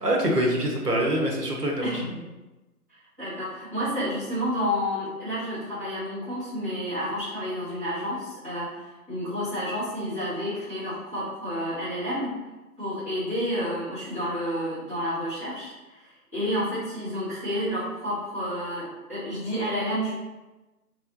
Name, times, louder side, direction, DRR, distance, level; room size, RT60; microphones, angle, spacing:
voice 1, 0.0-2.0, right 1 dB, 80° right, -1 dB, 1.1 m, -25 dB
voice 2, 2.9-12.3 12.8-20.1, equal, 10° right, -17 dB, 1.2 m, -30 dB
4.5 x 3.3 x 2.6 m, 1.1 s
figure-of-eight pair, 160°, 47 cm